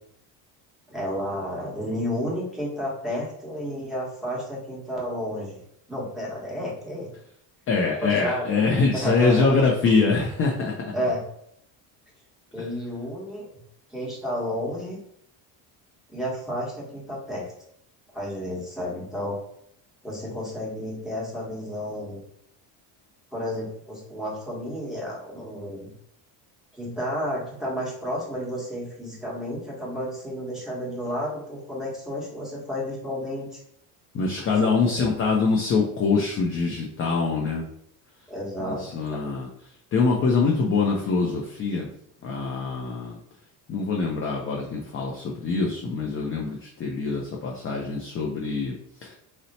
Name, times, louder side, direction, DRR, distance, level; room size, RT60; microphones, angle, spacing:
voice 1, 0.9-5.6 5.9-7.1 8.0-8.5 8.9-9.5 10.9-11.2 12.5-13.5 13.9-15.0 16.1-17.5 18.1-19.4 20.0-22.2 23.3-25.9 26.7-33.6 34.5-35.1 38.3-39.3, equal, ahead, -6 dB, 1.1 m, -31 dB
voice 2, 7.7-10.9 34.1-37.6 38.6-39.5 39.9-41.9 42.2-43.2 43.7-48.8 49.0-49.2, left 4 dB, 30° left, -1 dB, 0.4 m, -24 dB
2.7 x 2.0 x 4.0 m, 0.72 s
cardioid pair, 135°, 44 cm